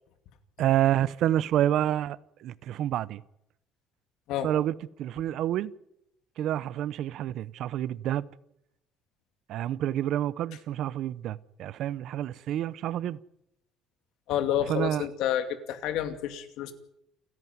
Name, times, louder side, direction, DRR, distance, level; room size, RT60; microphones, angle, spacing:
voice 1, 0.6-3.2 4.4-5.7 6.4-8.2 9.5-13.2 14.7-15.1, right 12 dB, 55° right, 0.7 m, -28 dB
voice 2, 14.3-16.7, left 10 dB, 65° left, 2.5 m, -29 dB
29.5 x 11.0 x 9.5 m
cardioid pair, 170°, 0 cm